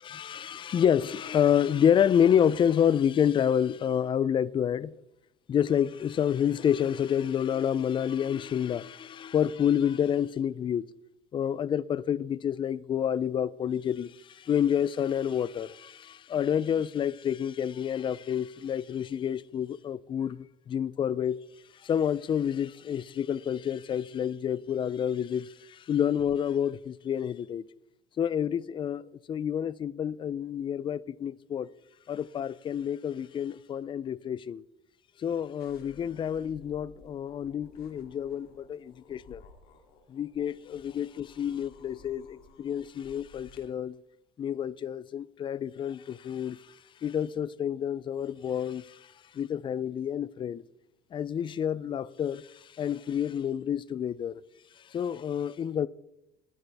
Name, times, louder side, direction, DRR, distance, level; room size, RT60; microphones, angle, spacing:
voice 1, 0.0-5.0 5.5-10.9 11.3-21.4 21.8-27.6 28.2-29.0 29.3-31.7 32.1-34.6 35.2-39.4 40.1-44.0 44.4-46.6 47.0-49.0 49.3-50.6 51.1-52.5 52.8-54.4 54.9-55.9, left 9 dB, 30° left, 0.4 m, -28 dB
sound 1, 35.6-43.6, left 5 dB, 65° left, 2.4 m, -55 dB
19.5 x 9.5 x 3.4 m
cardioid pair, 135°, 17 cm